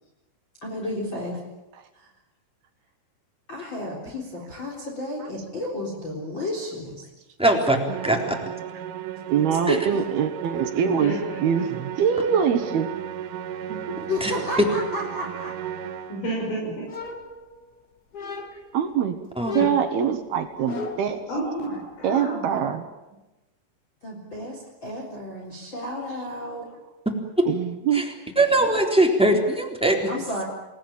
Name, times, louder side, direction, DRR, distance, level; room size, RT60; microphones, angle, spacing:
voice 1, 0.6-1.4 1.9-2.1 3.5-7.1 9.7-10.0 14.1-15.5 24.0-26.7 30.1-30.4, left 1 dB, 25° left, -1 dB, 4.2 m, -32 dB
voice 2, 7.4-8.4 9.7-9.8 14.0-14.3 19.4-19.6 27.9-28.1 28.3-29.9, right 1 dB, ahead, 0 dB, 2.8 m, -21 dB
Musical instrument, 7.9-16.4, right 10 dB, 90° right, 4.2 m, -35 dB
voice 3, 9.3-12.9 13.7-13.8 18.7-19.2 19.5-21.4 22.0-22.9 26.1-26.2 27.4-28.0, right 8 dB, 65° right, 7 dB, 3.0 m, -24 dB
voice 4, 10.8-11.4 16.1-16.8 21.3-22.5, right 1 dB, 75° left, -3 dB, 8.7 m, -30 dB
sound 1, 16.9-17.7 18.1-18.8 19.4-21.2, left 4 dB, 55° left, 1.0 m, -34 dB
28.5 x 18.5 x 8.9 m, 1.0 s
omnidirectional pair, 5.6 m